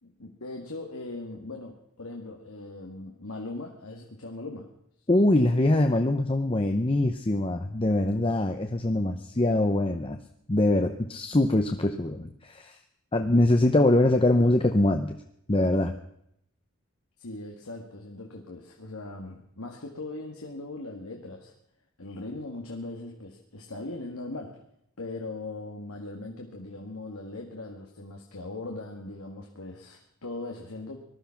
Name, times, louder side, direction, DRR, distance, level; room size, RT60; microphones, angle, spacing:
voice 1, 0.0-4.7 17.2-21.5 22.0-24.6 25.0-31.0, left 2 dB, 90° left, 1 dB, 1.9 m, -39 dB
voice 2, 5.1-10.2 10.5-12.8 13.1-15.2 15.5-15.9, left 1 dB, 25° left, 5 dB, 0.8 m, -23 dB
19.5 x 12.5 x 5.9 m, 0.74 s
head